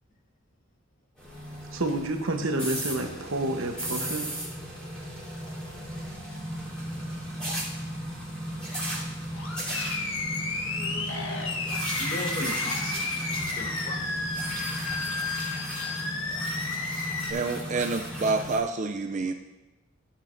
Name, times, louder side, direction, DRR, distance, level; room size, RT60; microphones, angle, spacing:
sound 1, 1.2-18.6, equal, 5° left, 3.5 m, -35 dB
voice 1, 1.7-4.3, right 2 dB, 70° right, 5 dB, 1.0 m, -29 dB
Animal, 9.3-17.3, left 3 dB, 70° left, 1.3 m, -32 dB
voice 2, 10.6-11.5 11.9-13.1 13.5-14.2, left 1 dB, 40° left, 2 dB, 1.3 m, -38 dB
voice 3, 17.3-19.3, right 3 dB, 35° right, 5 dB, 0.4 m, -28 dB
15.0 x 8.6 x 2.6 m, 1.0 s
head